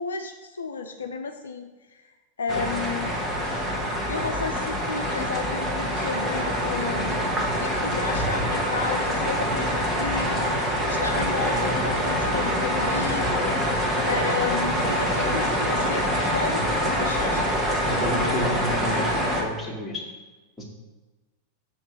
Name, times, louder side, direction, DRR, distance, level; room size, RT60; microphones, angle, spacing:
voice 1, 0.0-2.1 2.4-3.1 4.1-7.2 7.5-13.6 14.0-17.4 17.9-18.6, left 4 dB, 70° left, 5 dB, 0.5 m, -33 dB
sound 1, 2.5-19.4, equal, 10° right, 1.6 m, -25 dB
voice 2, 17.9-19.1 19.4-20.0 20.6-20.7, equal, 10° left, -4 dB, 2.0 m, -31 dB
6.0 x 4.3 x 6.1 m, 1.2 s
figure-of-eight pair, 90°, 0 cm